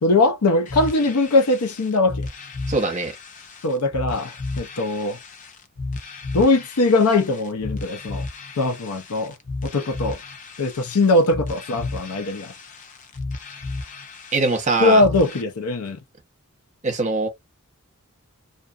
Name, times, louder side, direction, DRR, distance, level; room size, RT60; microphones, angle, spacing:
voice 1, 0.0-2.3 3.6-5.2 6.3-8.3 8.6-9.3 9.6-10.2 10.6-12.5 14.8-16.0, left 2 dB, 85° left, 0.6 m, -20 dB
sound 1, 0.7-15.4, left 3 dB, 35° left, 0.6 m, -34 dB
voice 2, 2.7-3.1 14.3-15.0 16.8-17.3, right 3 dB, 35° right, 0.9 m, -22 dB
2.5 x 2.5 x 2.4 m
head